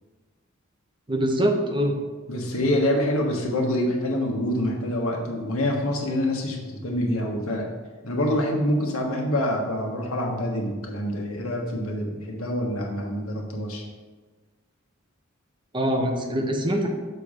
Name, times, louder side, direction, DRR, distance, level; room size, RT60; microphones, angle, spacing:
voice 1, 1.1-2.0 15.7-16.9, equal, 25° right, 3 dB, 0.9 m, -23 dB
voice 2, 2.3-7.7 8.0-13.8, left 1 dB, 75° left, 0 dB, 1.4 m, -26 dB
6.9 x 4.6 x 5.0 m, 1.4 s
head